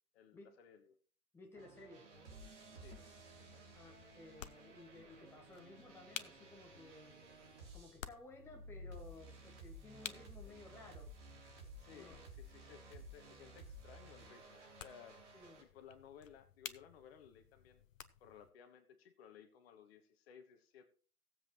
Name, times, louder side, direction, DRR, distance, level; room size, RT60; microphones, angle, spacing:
voice 1, 0.1-0.9 2.8-3.0 11.8-15.2 15.6-17.8 18.2-20.9, left 8 dB, 45° left, 8 dB, 1.4 m, -59 dB
voice 2, 1.3-2.1 3.7-7.2 7.7-11.2 11.9-12.3 15.3-15.7, left 2 dB, 5° left, 1 dB, 1.4 m, -57 dB
sound 1, 1.5-8.0 8.3-15.6, right 1 dB, 50° right, 3.6 m, -55 dB
sound 2, 2.1-18.5, left 9 dB, 60° left, 0.9 m, -56 dB
17.5 x 7.7 x 3.1 m, 0.40 s
figure-of-eight pair, 115°, 44 cm